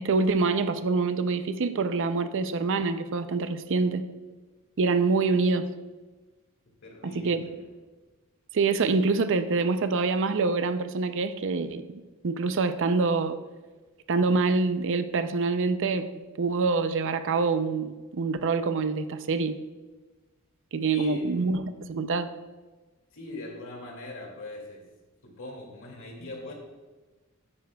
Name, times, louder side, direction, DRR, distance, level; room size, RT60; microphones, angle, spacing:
voice 1, 0.0-4.0 4.8-5.7 7.0-7.5 8.5-13.4 14.1-19.6 20.7-22.3, right 4 dB, 60° right, 11 dB, 0.5 m, -26 dB
voice 2, 6.8-7.7 20.8-21.5 23.1-24.8 25.2-26.5, left 1 dB, 65° left, 0 dB, 2.3 m, -41 dB
13.0 x 9.6 x 2.3 m, 1.3 s
head